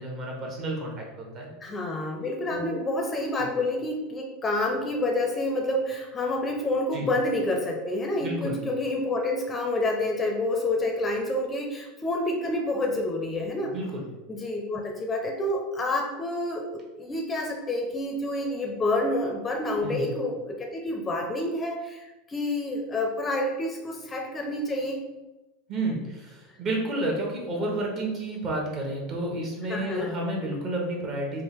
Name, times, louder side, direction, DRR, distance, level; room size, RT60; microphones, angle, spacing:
voice 1, 0.0-1.5 2.5-2.8 3.4-3.5 6.9-7.1 8.2-8.6 13.6-14.0 19.8-20.1 25.7-31.4, right 1 dB, 40° right, -1 dB, 1.1 m, -31 dB
voice 2, 1.6-13.7 14.3-25.0 29.7-30.1, left 1 dB, 20° left, 2 dB, 0.5 m, -28 dB
3.4 x 2.4 x 3.5 m, 1.1 s
supercardioid pair, 120°, 0 cm